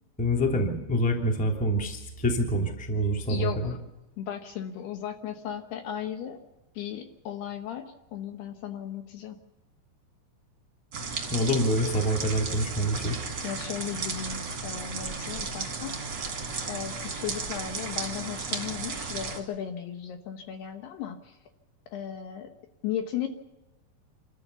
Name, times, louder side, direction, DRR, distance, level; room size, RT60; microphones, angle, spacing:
voice 1, 0.2-3.7 11.3-13.2, equal, 5° left, 1 dB, 1.7 m, -26 dB
voice 2, 3.3-3.8 4.2-6.4 6.7-9.4 13.4-16.0 16.7-21.4 21.9-22.5 22.8-23.3, left 9 dB, 70° left, 6 dB, 2.8 m, -36 dB
sound 1, 10.9-19.4, right 4 dB, 35° right, 1.9 m, -34 dB
27.5 x 13.5 x 7.0 m, 0.99 s
omnidirectional pair, 5.4 m